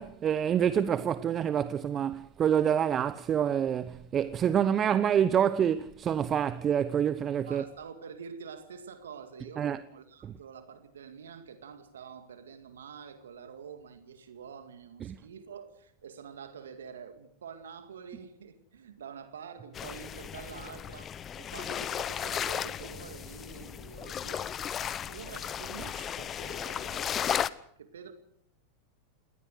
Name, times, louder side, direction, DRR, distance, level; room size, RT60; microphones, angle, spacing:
voice 1, 0.0-7.6 9.6-9.8 10.2-10.3 15.0-15.2, right 9 dB, 30° right, 0.8 m, -27 dB
voice 2, 7.5-27.4 27.8-28.1, right 6 dB, 80° right, 2.1 m, -47 dB
sound 1, 19.7-27.5, left 9 dB, 30° left, 0.9 m, -35 dB
20.5 x 18.0 x 7.9 m
hypercardioid pair, 95°, 0 cm